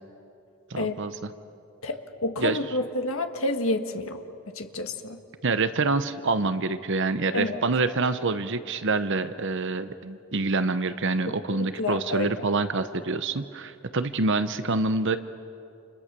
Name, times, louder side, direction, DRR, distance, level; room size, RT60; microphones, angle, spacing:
voice 1, 0.7-1.2 2.4-2.6 5.4-15.2, right 3 dB, 55° right, 11 dB, 0.9 m, -26 dB
voice 2, 1.8-4.2 4.5-5.2 7.3-7.6 11.5-12.3, left 2 dB, 65° left, 6 dB, 1.7 m, -29 dB
30.0 x 28.5 x 6.8 m, 2.6 s
head